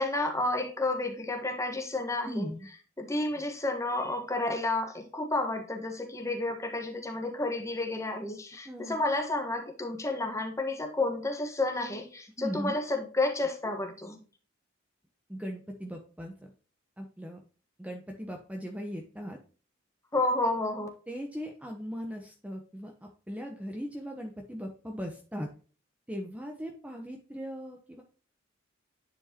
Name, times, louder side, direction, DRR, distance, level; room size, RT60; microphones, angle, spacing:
voice 1, 0.0-2.5 3.0-14.2 20.1-20.9, left 2 dB, 15° left, 3 dB, 1.4 m, -31 dB
voice 2, 2.2-2.7 8.6-9.0 12.4-12.8 15.3-16.3 17.0-17.4 17.8-19.4 21.1-25.5 26.1-28.0, equal, 5° right, 1 dB, 0.9 m, -38 dB
10.0 x 4.5 x 2.9 m, 0.37 s
head